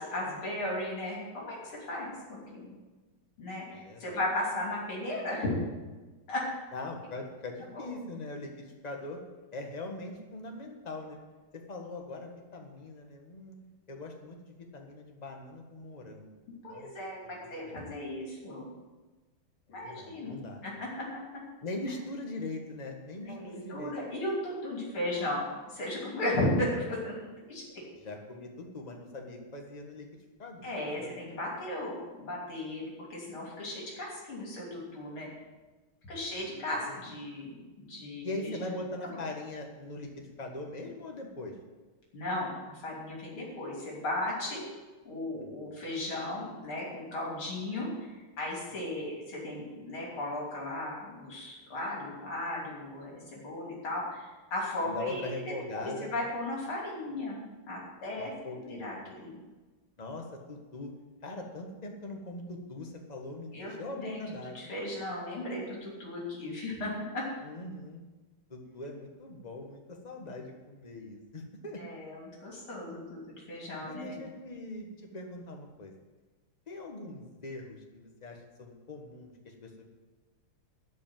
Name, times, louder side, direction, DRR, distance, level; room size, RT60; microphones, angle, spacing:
voice 1, 0.0-2.1 2.5-2.8 3.4-5.5 6.3-6.4 7.7-7.9 16.6-18.7 19.7-20.4 20.6-20.9 23.2-27.1 27.5-27.6 30.6-35.3 36.1-38.6 42.1-44.6 45.0-48.1 48.4-55.3 55.7-59.4 63.5-63.7 64.0-64.2 64.5-67.2 71.8-74.2, left 1 dB, 75° left, -4 dB, 4.0 m, -36 dB
voice 2, 3.7-4.2 6.7-9.2 9.5-11.2 11.7-13.5 13.9-16.3 16.6-16.9 17.3-17.9 19.7-20.8 21.6-23.9 28.0-30.7 31.0-31.2 36.9-37.0 38.2-41.5 45.3-45.5 54.8-56.3 58.2-59.1 60.0-60.9 61.2-64.7 67.4-68.0 68.5-71.8 73.9-74.9 75.1-75.9 76.7-79.8, left 2 dB, 20° left, 2 dB, 1.4 m, -41 dB
12.5 x 5.4 x 9.2 m, 1.2 s
omnidirectional pair, 2.4 m